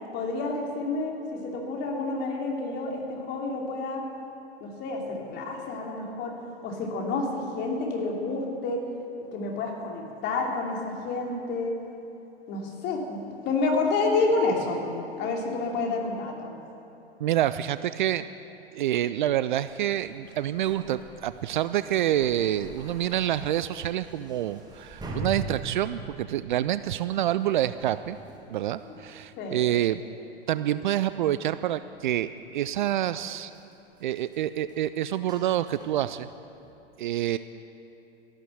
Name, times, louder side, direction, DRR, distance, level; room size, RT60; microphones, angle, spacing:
voice 1, 0.1-4.1 4.6-8.8 9.3-11.7 12.5-13.2 13.4-16.5 28.8-29.0 29.4-29.6, left 3 dB, 35° left, 0 dB, 3.1 m, -29 dB
voice 2, 17.2-18.3 18.7-28.2 28.5-30.0 30.5-33.5 34.0-36.3 37.0-37.4, right 12 dB, 50° right, 13 dB, 0.5 m, -27 dB
sound 1, 19.7-29.9 30.2-30.4 30.7-36.7, right 3 dB, 15° right, 2.2 m, -44 dB
14.0 x 12.0 x 7.9 m, 2.9 s
figure-of-eight pair, 100°, 32 cm